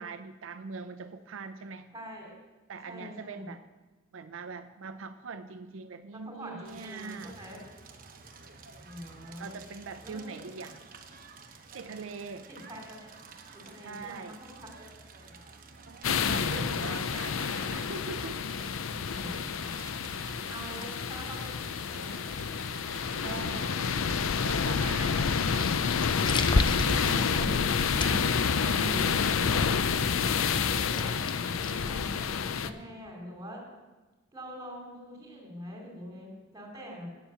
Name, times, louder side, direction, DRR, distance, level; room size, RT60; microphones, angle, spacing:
voice 1, 0.0-1.9 2.7-3.6 4.1-7.3 8.7-8.9 9.4-10.8 11.7-12.5 13.8-14.4 15.9-18.4 23.2-23.8 24.4-25.4 26.7-29.3, right 4 dB, 70° right, 9 dB, 0.5 m, -42 dB
voice 2, 1.9-2.3 2.9-3.5 6.1-7.6 8.8-9.6 10.0-10.4 12.5-13.2 13.5-15.4 19.1-19.7 20.4-22.3 30.4-33.6 34.3-37.1, equal, 20° right, 1 dB, 2.7 m, -45 dB
Crackle, 6.6-25.7, right 4 dB, 45° right, 0.9 m, -50 dB
sound 1, 16.0-32.7, left 6 dB, 75° left, 0.5 m, -29 dB
sound 2, 25.0-32.3, left 2 dB, 25° left, 0.5 m, -35 dB
9.0 x 7.2 x 6.9 m, 1.2 s
head